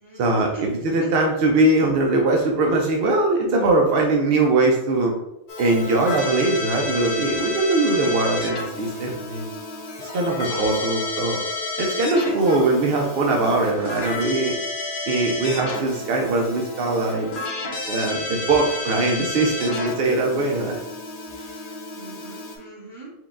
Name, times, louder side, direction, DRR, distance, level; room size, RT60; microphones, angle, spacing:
voice 1, 0.2-5.1 5.6-9.5 10.1-11.4 11.8-14.6 15.1-17.3 17.9-20.8, right 2 dB, 60° right, 0 dB, 0.8 m, -21 dB
Keyboard (musical), 5.5-22.6, left 3 dB, 50° left, 0.9 m, -31 dB
voice 2, 12.2-12.7 21.9-23.1, right 2 dB, 25° right, -6 dB, 1.0 m, -35 dB
4.5 x 2.3 x 3.6 m, 0.84 s
omnidirectional pair, 1.2 m